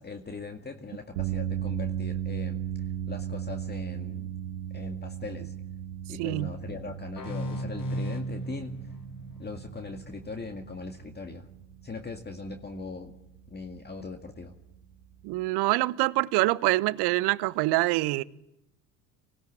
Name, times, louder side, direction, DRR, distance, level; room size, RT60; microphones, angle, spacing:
voice 1, 0.0-2.6 3.1-4.4 4.7-5.5 6.1-8.8 9.4-11.5 11.8-13.1 13.5-14.6, left 4 dB, 20° left, 2.0 m, -40 dB
sound 1, 1.1-15.4, right 10 dB, 70° right, 1.7 m, -37 dB
voice 2, 6.2-6.5 15.2-18.2, right 20 dB, 55° right, 1.0 m, -25 dB
sound 2, 7.2-10.6, right 1 dB, 40° left, 2.9 m, -36 dB
25.5 x 17.0 x 8.7 m
figure-of-eight pair, 65°, 49 cm